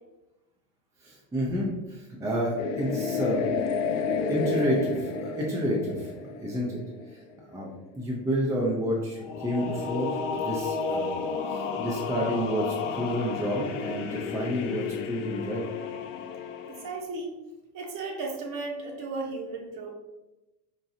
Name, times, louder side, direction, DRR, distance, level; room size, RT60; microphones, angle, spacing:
voice 1, 1.0-3.5 4.3-6.1 6.4-6.8 7.1-7.2 7.5-11.1 11.5-15.6, equal, 5° right, -3 dB, 0.4 m, -30 dB
sound 1, 2.6-7.1 9.2-17.0, left 5 dB, 50° left, 0.4 m, -31 dB
voice 2, 16.7-17.3 17.7-19.9, right 3 dB, 40° right, 0 dB, 0.9 m, -35 dB
4.3 x 2.3 x 2.6 m, 1.0 s
figure-of-eight pair, 75°, 48 cm